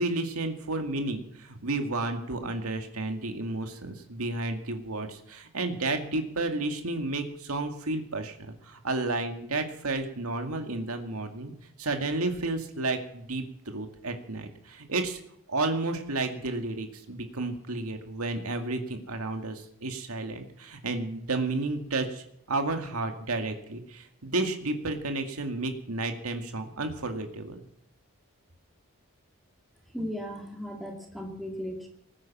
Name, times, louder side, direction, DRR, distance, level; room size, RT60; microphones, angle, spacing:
voice 1, 0.0-11.5 11.8-15.2 15.5-27.6, right 2 dB, 85° right, 5 dB, 2.2 m, -32 dB
voice 2, 29.9-31.9, equal, ahead, 1 dB, 2.4 m, -36 dB
19.0 x 9.8 x 7.3 m, 0.74 s
head